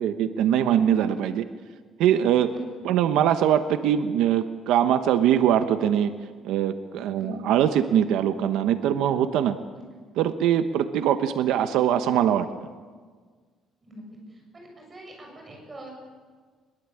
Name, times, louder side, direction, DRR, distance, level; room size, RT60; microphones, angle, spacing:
voice 1, 0.0-1.4 2.0-2.5 2.8-6.1 6.4-9.6 10.2-12.5, right 10 dB, 90° right, 9 dB, 1.1 m, -22 dB
voice 2, 14.3-15.9, right 1 dB, 20° right, 0 dB, 7.2 m, -43 dB
22.5 x 22.0 x 8.7 m, 1.5 s
cardioid pair, 175°, 0 cm